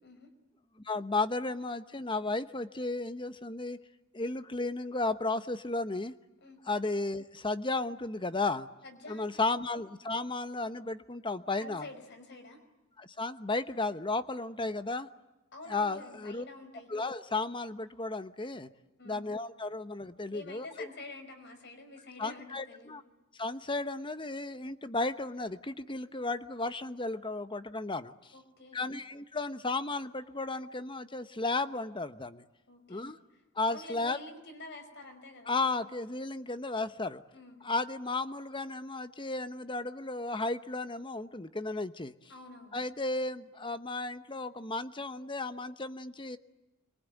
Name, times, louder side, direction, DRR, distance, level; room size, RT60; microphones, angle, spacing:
voice 1, 0.8-3.8 4.1-6.1 6.6-8.7 9.1-11.9 13.0-15.1 15.7-16.4 16.9-18.7 19.0-20.9 22.2-23.0 23.4-28.3 28.7-32.4 32.9-33.2 33.5-34.2 35.5-37.2 37.6-42.1 42.7-46.4, left 3 dB, 20° left, 12 dB, 0.9 m, -34 dB
voice 2, 8.8-9.3 11.6-12.6 15.5-16.9 19.0-19.4 20.3-23.0 28.3-28.9 32.7-33.1 33.7-35.5 37.3-37.6 42.3-42.8, left 2 dB, 55° left, 7 dB, 5.2 m, -48 dB
27.0 x 23.5 x 9.3 m, 1.1 s
head